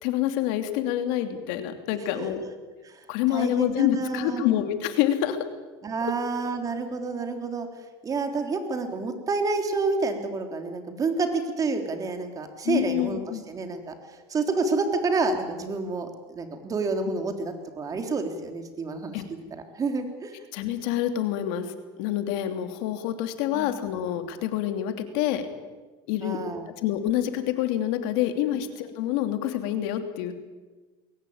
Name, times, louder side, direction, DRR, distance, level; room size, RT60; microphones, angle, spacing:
voice 1, 0.0-2.4 3.1-5.4 12.6-13.4 19.1-19.2 20.5-21.7 22.0-25.5 26.1-26.4 26.8-30.3, left 12 dB, 70° left, 7 dB, 2.9 m, -27 dB
voice 2, 1.9-2.3 2.8-3.0 3.3-4.4 5.8-7.7 8.0-13.2 13.5-13.9 14.3-19.2 19.5-20.3 23.5-23.7 26.2-26.7 28.5-28.6, right 3 dB, 30° right, 5 dB, 3.5 m, -29 dB
22.0 x 18.0 x 8.7 m, 1.3 s
supercardioid pair, 115°, 12 cm